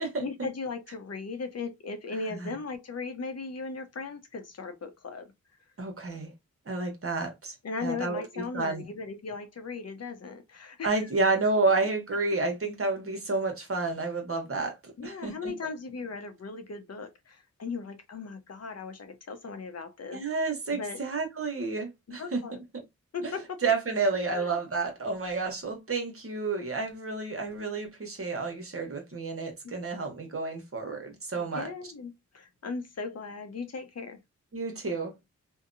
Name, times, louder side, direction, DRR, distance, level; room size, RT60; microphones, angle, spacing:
voice 1, 0.2-5.3 7.6-11.1 15.0-21.1 22.2-22.6 23.1-23.6 24.3-24.5 29.6-29.7 31.4-34.2, left 4 dB, 55° left, 0.7 m, -38 dB
voice 2, 5.8-6.3 6.7-7.5 7.8-8.2 8.5-8.8 10.8-14.8 15.0-15.5 20.1-22.4 22.7-22.8 23.6-31.7 34.5-35.1, right 3 dB, 45° right, 1.1 m, -30 dB
2.7 x 2.2 x 2.5 m
cardioid pair, 55°, 31 cm